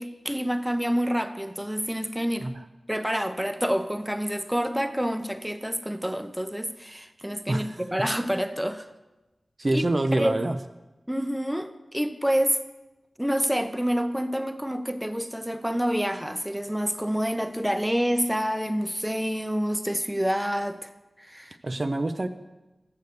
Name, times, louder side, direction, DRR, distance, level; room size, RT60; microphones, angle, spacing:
voice 1, 0.0-2.5 2.9-8.9 9.7-9.8 10.2-10.4 11.1-12.6 13.2-20.9 21.2-21.6, equal, 5° right, 10 dB, 0.6 m, -27 dB
voice 2, 7.5-7.8 9.6-10.6 21.6-22.3, right 2 dB, 45° right, 8 dB, 0.4 m, -26 dB
6.7 x 6.4 x 6.7 m, 1.1 s
cardioid pair, 40°, 0 cm